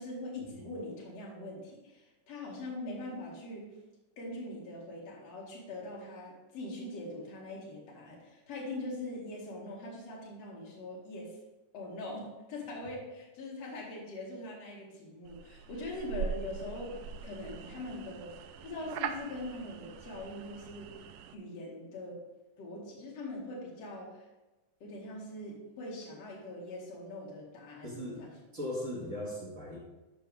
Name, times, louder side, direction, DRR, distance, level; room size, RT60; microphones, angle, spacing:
voice 1, 0.0-3.7 4.2-11.3 11.7-18.3 18.6-20.9 21.3-22.2 22.6-24.3 24.8-28.4, left 2 dB, 55° left, -4 dB, 3.0 m, -42 dB
sound 1, 15.2-21.3, right 7 dB, 80° right, 2.1 m, -42 dB
voice 2, 27.8-28.2 28.5-29.8, left 1 dB, 30° right, -4 dB, 1.5 m, -38 dB
13.0 x 5.5 x 3.4 m, 1.1 s
omnidirectional pair, 3.8 m